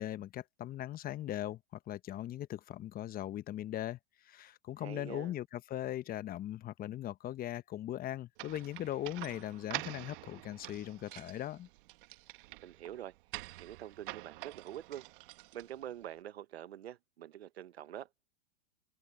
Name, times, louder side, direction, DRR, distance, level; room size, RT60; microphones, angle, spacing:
voice 1, 0.0-11.7, left 12 dB, 30° left, 1.0 m, -39 dB
voice 2, 4.8-5.3 12.6-13.1 13.6-15.1 15.5-18.1, right 11 dB, 80° right, 1.4 m, -45 dB
sound 1, 8.4-16.0, right 22 dB, 60° right, 1.6 m, -47 dB
hypercardioid pair, 110°, 31 cm